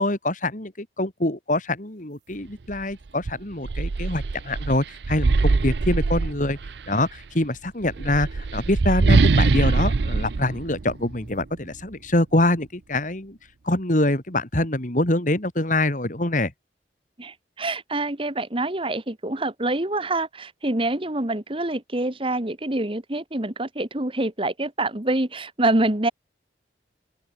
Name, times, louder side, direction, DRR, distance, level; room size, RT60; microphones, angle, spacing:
voice 1, 0.0-6.6 6.9-13.4 13.6-16.5, left 1 dB, 45° left, 2.9 m, -25 dB
sound 1, 2.7-2.8 3.2-6.9 7.8-11.4, right 3 dB, 75° right, 0.6 m, -22 dB
voice 2, 17.2-26.1, right 2 dB, 30° right, 1.8 m, -26 dB
open air
head